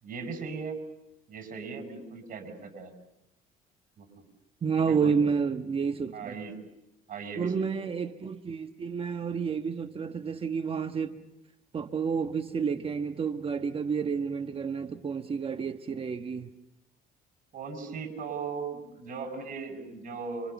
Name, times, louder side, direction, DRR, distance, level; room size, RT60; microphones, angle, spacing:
voice 1, 0.0-0.8 1.3-2.9 4.0-4.2 4.7-5.2 6.1-6.6 7.1-7.9 17.5-20.5, right 5 dB, 50° right, 7.2 m, -38 dB
voice 2, 4.6-6.3 7.4-11.2 11.7-16.5, right 6 dB, 35° right, 1.2 m, -30 dB
30.0 x 26.0 x 7.0 m
cardioid pair, 110°, 17 cm